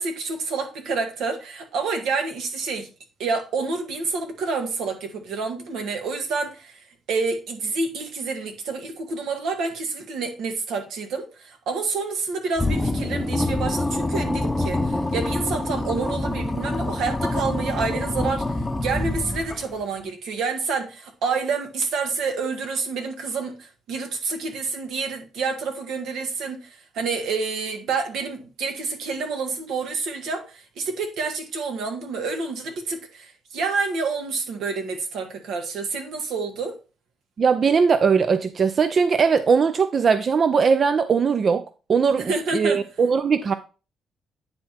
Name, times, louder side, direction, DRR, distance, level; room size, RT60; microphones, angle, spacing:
voice 1, 0.0-2.9 3.2-6.8 7.1-36.7 42.2-42.8, right 4 dB, 80° right, 1.6 m, -28 dB
sound 1, 12.6-19.8, left 2 dB, 15° left, 0.7 m, -26 dB
voice 2, 37.4-41.6 41.9-43.5, right 5 dB, 45° right, 0.5 m, -20 dB
9.7 x 3.6 x 4.4 m
cardioid pair, 90°, 0 cm